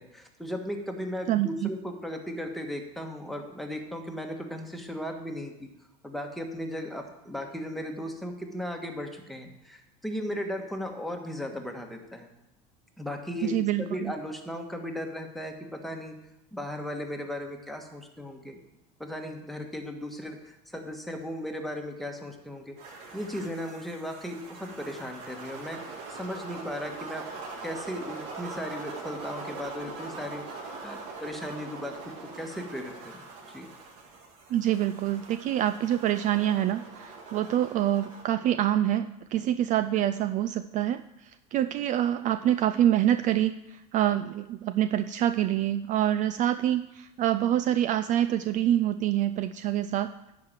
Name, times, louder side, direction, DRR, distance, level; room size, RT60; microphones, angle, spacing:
voice 1, 0.1-5.7 6.0-12.3 13.0-16.1 16.5-18.6 19.0-22.7 23.1-25.8 26.1-30.4 30.8-32.0 32.3-33.7, equal, ahead, 2 dB, 1.4 m, -36 dB
voice 2, 1.3-1.7 13.4-14.1 34.5-50.1, right 12 dB, 45° right, 12 dB, 0.4 m, -26 dB
sound 1, 22.8-38.2, right 3 dB, 70° right, 1.8 m, -42 dB
10.5 x 4.9 x 7.3 m, 0.91 s
supercardioid pair, 115°, 19 cm